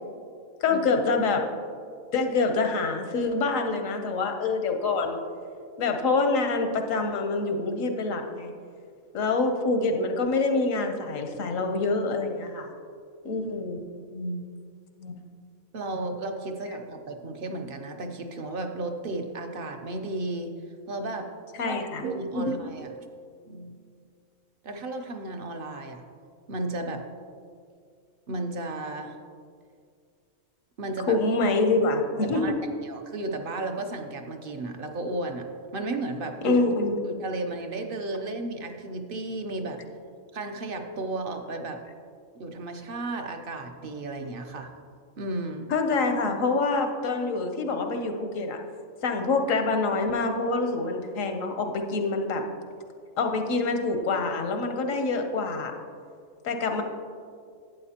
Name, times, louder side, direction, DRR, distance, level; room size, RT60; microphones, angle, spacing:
voice 1, 0.6-1.4 2.1-5.2 5.8-8.5 9.1-12.7 13.2-13.8 15.0-15.1 21.6-22.0 22.4-22.5 31.1-32.4 36.4-37.0 45.7-48.6 49.0-52.4 53.2-55.7 56.4-56.8, left 3 dB, 85° left, 5 dB, 1.2 m, -26 dB
voice 2, 14.1-14.4 15.7-20.5 20.9-21.3 21.6-23.1 23.5-23.8 24.6-26.0 26.5-27.0 28.3-29.2 30.8-31.2 32.2-32.5 32.8-35.5 35.7-39.8 40.3-41.8 42.4-44.7 45.2-45.7, right 2 dB, 50° right, 5 dB, 0.8 m, -34 dB
11.5 x 8.7 x 2.9 m, 2.2 s
omnidirectional pair, 1.3 m